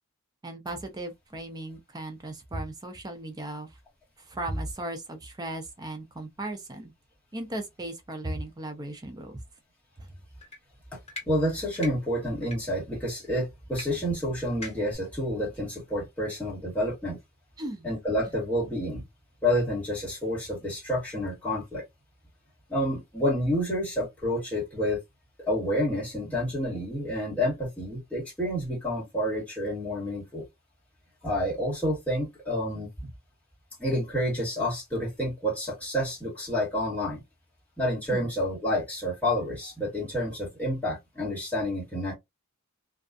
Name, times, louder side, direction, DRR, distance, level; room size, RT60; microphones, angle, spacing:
voice 1, 0.4-3.8 4.2-6.9 7.3-9.4 10.0-10.1 17.6-17.9 38.1-38.3, right 1 dB, 20° right, 0.4 m, -37 dB
sound 1, 10.4-10.6 11.1-11.3 11.8-11.9 12.4-12.6 13.8-13.9 14.1-14.2 14.6-15.0, left 2 dB, 30° left, 1.2 m, -39 dB
voice 2, 11.2-17.2 17.8-19.0 19.4-21.8 22.7-25.0 25.5-30.4 31.2-33.1 33.8-37.2 37.8-42.1, equal, 5° left, 1.5 m, -29 dB
2.4 x 2.3 x 2.4 m
head